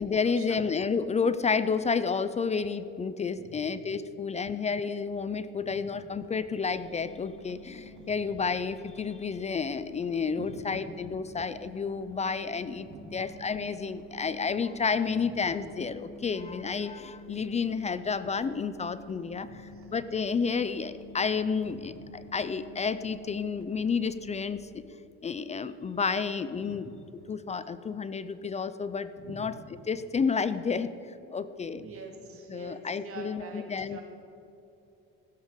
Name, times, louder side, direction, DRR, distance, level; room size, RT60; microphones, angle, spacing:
voice 1, 0.0-19.6 19.9-24.8 25.2-29.6 29.9-31.8 32.5-34.0, left 5 dB, 25° left, 14 dB, 0.4 m, -31 dB
sound 1, 6.2-24.6, equal, 75° right, 3.5 m, -49 dB
voice 2, 19.4-19.9 26.6-26.8 29.2-29.4 31.8-33.6 33.9-34.0, right 3 dB, 50° right, 1 dB, 2.5 m, -46 dB
16.0 x 7.2 x 6.5 m, 2.9 s
cardioid pair, 115°, 30 cm